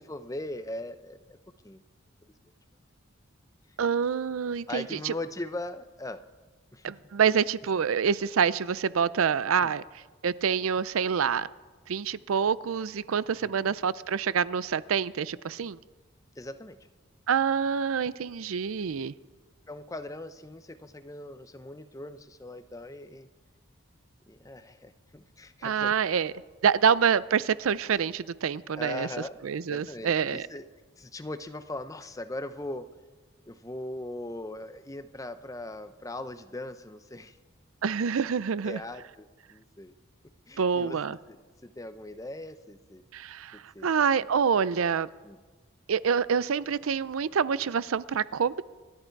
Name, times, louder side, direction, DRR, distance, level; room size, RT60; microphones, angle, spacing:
voice 1, 0.0-1.4 1.6-1.8 2.2-2.3 4.7-6.2 6.7-6.9 9.6-9.7 13.4-13.7 16.4-16.8 19.7-23.3 24.3-25.9 28.8-29.4 29.7-30.7 31.0-32.9 33.5-37.4 38.6-39.9 40.5-41.0 41.3-43.0 43.5-43.9 44.4-44.5 45.2-45.4, left 1 dB, 15° left, 11 dB, 0.6 m, -40 dB
voice 2, 3.8-5.1 6.8-9.8 10.2-11.5 11.9-15.8 17.3-19.1 25.6-26.3 26.6-29.1 29.4-30.5 37.8-38.8 40.6-41.2 43.1-45.1 45.9-48.6, right 7 dB, 85° right, 18 dB, 0.5 m, -26 dB
26.5 x 11.5 x 4.6 m, 1.3 s
head